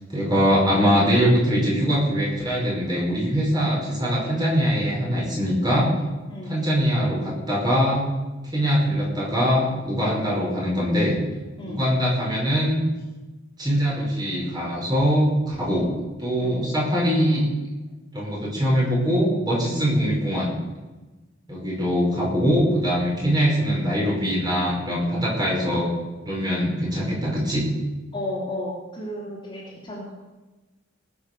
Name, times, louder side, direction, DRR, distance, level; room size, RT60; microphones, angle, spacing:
voice 1, 0.1-5.9 6.4-8.1 8.4-11.2 11.7-12.8 13.6-15.9 16.2-17.5 18.1-20.5 21.5-25.9 26.3-27.7, equal, 20° right, -4 dB, 5.3 m, -22 dB
voice 2, 28.1-30.1, left 1 dB, 25° left, -4 dB, 3.0 m, -33 dB
18.5 x 7.3 x 6.8 m, 1.1 s
head